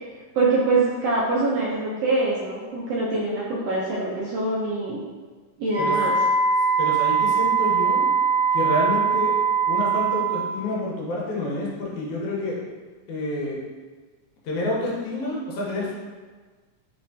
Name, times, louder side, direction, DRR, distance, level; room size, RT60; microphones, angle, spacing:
voice 1, 0.3-5.0 5.6-6.1, right 3 dB, 75° right, -5 dB, 1.5 m, -24 dB
Wind instrument woodwind instrument, 5.7-10.5, right 5 dB, 70° left, 2.0 m, -21 dB
voice 2, 6.8-8.0 8.5-9.3 9.7-12.6 13.1-13.6 14.4-15.9, left 1 dB, 90° left, -4 dB, 2.3 m, -28 dB
4.8 x 3.3 x 2.6 m, 1.4 s
omnidirectional pair, 3.4 m